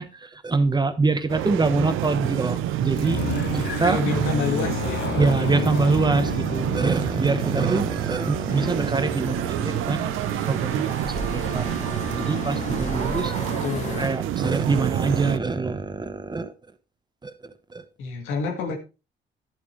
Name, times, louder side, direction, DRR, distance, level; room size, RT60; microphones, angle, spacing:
voice 1, 0.0-3.2 3.5-4.0 5.2-10.1 10.5-11.0 11.3-11.7 12.2-13.3 14.0-16.5 17.2-17.3 17.7-17.8, right 3 dB, 20° right, 10 dB, 1.1 m, -24 dB
sound 1, 1.3-15.4, right 14 dB, 90° right, 0.7 m, -28 dB
sound 2, 1.6-10.1, left 10 dB, 60° left, 0.6 m, -33 dB
voice 2, 3.9-5.1 13.5-14.0 18.0-18.8, left 4 dB, 85° left, 2 dB, 2.1 m, -28 dB
sound 3, 8.5-14.1, left 2 dB, 40° left, 3.0 m, -34 dB
11.0 x 8.6 x 3.2 m, 0.30 s
cardioid pair, 90°, 20 cm